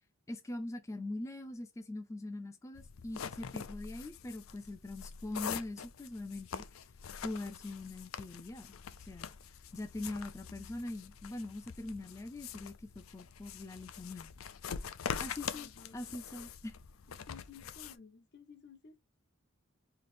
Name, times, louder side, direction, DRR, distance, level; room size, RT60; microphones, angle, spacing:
voice 1, 0.3-6.6 7.2-8.7 9.0-9.3 9.7-14.3 15.2-16.8, left 2 dB, 15° left, 0.4 m, -42 dB
sound 1, 2.8-18.0, left 7 dB, 80° left, 0.5 m, -44 dB
voice 2, 15.4-16.1 17.3-19.0, left 5 dB, 55° left, 0.8 m, -55 dB
3.2 x 2.7 x 4.1 m
head